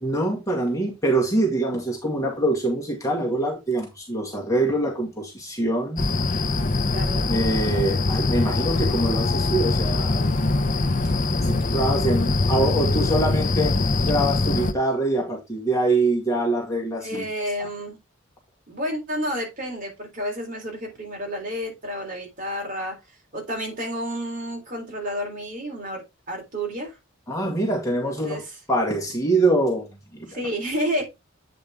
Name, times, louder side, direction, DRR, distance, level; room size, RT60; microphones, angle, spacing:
voice 1, 0.0-6.1 7.3-10.7 11.4-17.3 27.3-28.4 28.7-30.3, right 2 dB, 15° left, 2.0 m, -24 dB
sound 1, 6.0-14.7, left 2 dB, 40° left, 0.7 m, -23 dB
voice 2, 6.9-7.3 17.0-18.0 18.7-23.0 23.3-26.0 26.3-27.0 28.0-28.6 30.3-31.0, equal, 40° right, 3.5 m, -30 dB
8.7 x 5.1 x 3.5 m
head